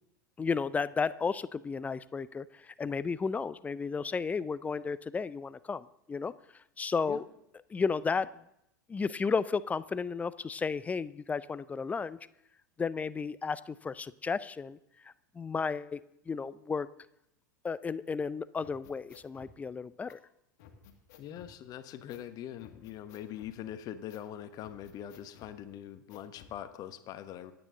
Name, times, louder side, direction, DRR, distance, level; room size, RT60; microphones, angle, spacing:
voice 1, 0.4-6.3 6.8-7.2 7.7-8.3 8.9-12.2 12.8-14.8 15.3-16.0 16.3-16.9 17.6-20.2, left 5 dB, 15° left, 18 dB, 0.4 m, -33 dB
sound 1, 18.6-19.5 20.1-20.2 20.6-21.5 22.1-22.3 22.6-23.6 24.1-24.3 24.6-25.5 26.1-26.6, left 7 dB, 55° left, 1.9 m, -55 dB
voice 2, 21.2-27.5, left 11 dB, 35° left, 11 dB, 1.1 m, -43 dB
26.5 x 8.9 x 3.8 m, 0.79 s
figure-of-eight pair, 85°, 11 cm